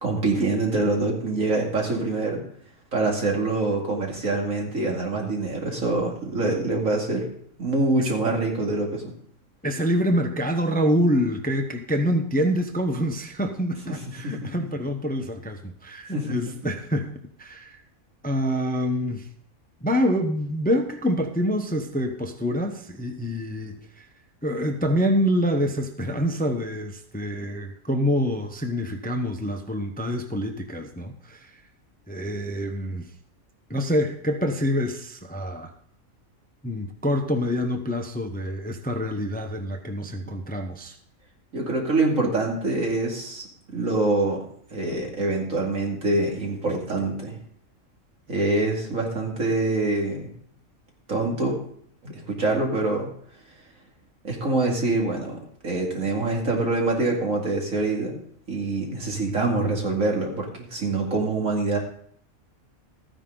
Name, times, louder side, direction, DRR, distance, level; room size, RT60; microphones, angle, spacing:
voice 1, 0.0-2.4 2.9-7.3 7.6-9.1 13.9-14.0 14.2-14.3 16.1-16.4 41.5-43.4 43.7-44.4 44.7-47.4 48.3-50.3 51.1-51.6 52.0-53.1 54.2-58.2 58.5-61.8, right 2 dB, 75° right, 0 dB, 2.8 m, -25 dB
voice 2, 9.6-17.1 17.4-17.8 18.2-19.3 19.8-24.1 24.4-31.6 32.1-33.1 33.7-35.7 36.6-41.0, equal, 10° left, 6 dB, 0.7 m, -26 dB
14.0 x 10.0 x 3.8 m, 0.62 s
omnidirectional pair, 1.4 m